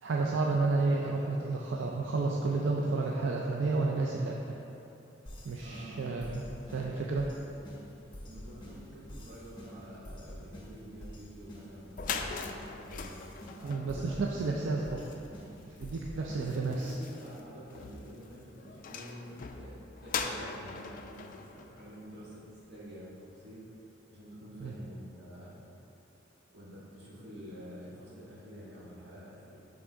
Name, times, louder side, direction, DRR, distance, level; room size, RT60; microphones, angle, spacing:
voice 1, 0.0-4.6 5.4-6.4 6.7-7.3 13.6-15.0 15.8-17.0 24.6-24.7, right 3 dB, 85° right, -1 dB, 0.4 m, -31 dB
sound 1, 5.3-16.8, equal, 25° left, 0.9 m, -48 dB
voice 2, 5.6-6.5 8.2-13.1 13.6-14.3 16.1-25.6 26.5-29.6, equal, 60° right, -7 dB, 1.5 m, -48 dB
sound 2, 11.6-11.7 11.9-22.7, left 5 dB, 45° left, 0.3 m, -42 dB
6.0 x 3.7 x 4.4 m, 2.9 s
head